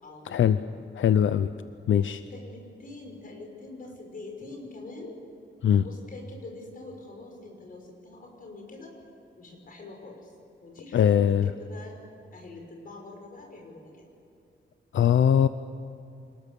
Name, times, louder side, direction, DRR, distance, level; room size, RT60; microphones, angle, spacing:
voice 1, 0.0-0.5 2.3-5.2 5.7-8.9 9.4-10.4 10.6-12.0 12.3-14.0, left 2 dB, 45° left, 1 dB, 5.8 m, -44 dB
voice 2, 1.0-1.5 1.9-2.2 5.6-5.8 10.9-11.5 14.9-15.5, left 9 dB, 85° left, 12 dB, 0.6 m, -21 dB
27.5 x 19.5 x 7.0 m, 2.7 s
wide cardioid pair, 170°, 20 cm